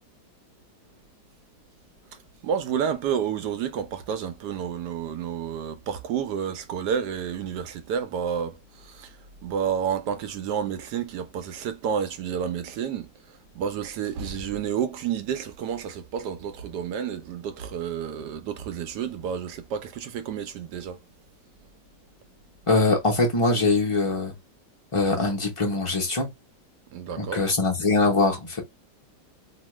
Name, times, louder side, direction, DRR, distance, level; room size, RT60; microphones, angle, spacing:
voice 1, 2.4-8.6 8.8-9.1 9.4-13.1 13.6-21.0 26.9-27.4, right 8 dB, 70° right, 1.0 m, -30 dB
voice 2, 22.7-24.3 24.9-26.3 27.2-28.6, left 3 dB, 45° left, 0.4 m, -22 dB
3.0 x 2.3 x 3.1 m
omnidirectional pair, 2.1 m